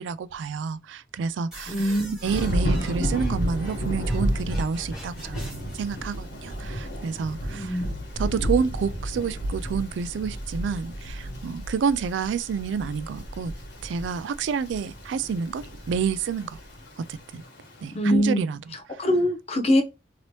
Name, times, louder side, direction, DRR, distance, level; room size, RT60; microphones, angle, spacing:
voice 1, 0.0-7.8 8.2-13.5 13.8-16.6 17.0-17.4 17.8-18.7, right 6 dB, 85° right, 0.3 m, -29 dB
sound 1, 1.5-5.9, equal, 5° right, 1.5 m, -40 dB
voice 2, 1.7-2.1 7.5-7.9 17.9-18.4 18.9-19.8, equal, 35° left, 0.6 m, -23 dB
Thunder / Rain, 2.2-17.8, equal, 85° left, 1.3 m, -32 dB
2.9 x 2.8 x 3.0 m
head